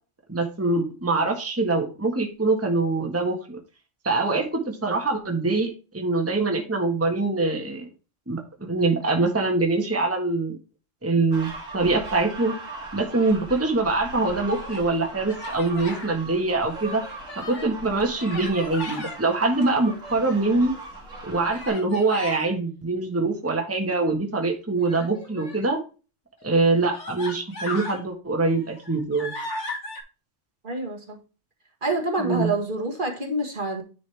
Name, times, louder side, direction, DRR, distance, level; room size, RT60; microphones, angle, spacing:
voice 1, 0.3-3.6 4.0-7.8 8.3-10.6 11.0-12.5 12.9-17.0 17.5-20.7 21.2-25.8 26.4-29.3 32.2-32.5, right 3 dB, 10° right, 2 dB, 1.4 m, -24 dB
sound 1, 11.3-21.7, right 2 dB, 90° right, 2.7 m, -39 dB
Human voice, 14.2-14.9 15.3-16.1 16.6-17.7 18.2-19.2 19.8-20.6 21.5-22.5 24.8-25.7 26.4-26.5 26.9-28.0 28.5-30.0, left 2 dB, 65° left, 2.3 m, -37 dB
voice 2, 30.6-31.2 31.8-33.8, right 2 dB, 40° right, 1 dB, 1.9 m, -27 dB
10.0 x 5.2 x 3.4 m, 0.33 s
omnidirectional pair, 1.3 m